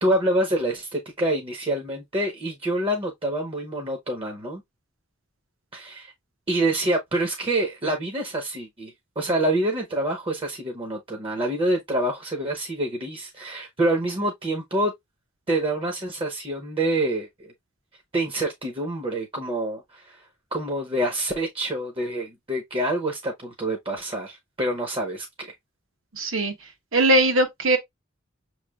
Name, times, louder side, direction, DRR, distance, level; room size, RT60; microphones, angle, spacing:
voice 1, 0.0-4.6 5.7-6.1 6.5-14.9 15.5-17.5 18.1-25.5, right 1 dB, 25° right, 0.8 m, -26 dB
voice 2, 26.1-26.5 26.9-27.8, right 1 dB, 70° right, 1.1 m, -20 dB
6.1 x 3.2 x 2.3 m
head